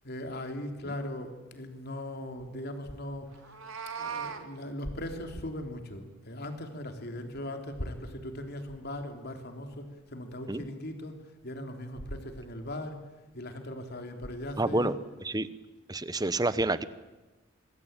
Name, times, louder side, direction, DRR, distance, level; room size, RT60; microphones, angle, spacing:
voice 1, 0.0-3.6 4.0-11.2 11.4-13.0 13.3-15.0, left 1 dB, 50° left, 5 dB, 3.4 m, -39 dB
Meow, 3.3-4.4, right 6 dB, 80° right, 2.2 m, -38 dB
voice 2, 14.6-14.9 15.2-15.5 15.9-16.8, right 2 dB, 20° right, 15 dB, 1.0 m, -28 dB
25.5 x 22.0 x 9.1 m, 1.1 s
head